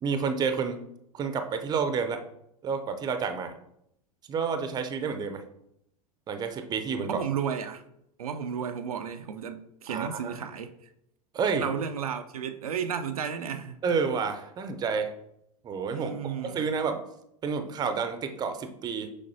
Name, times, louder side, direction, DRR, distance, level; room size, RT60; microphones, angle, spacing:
voice 1, 0.0-0.8 1.1-2.2 2.6-3.5 4.3-5.4 6.3-7.2 9.9-10.4 11.3-11.7 13.8-15.1 15.6-17.0 17.4-19.1, right 5 dB, 20° right, 9 dB, 0.6 m, -29 dB
voice 2, 7.0-7.8 8.2-10.7 11.6-13.8 15.9-16.7, right 7 dB, 70° right, 7 dB, 0.5 m, -33 dB
6.5 x 5.2 x 2.7 m, 0.77 s
figure-of-eight pair, 90°, 19 cm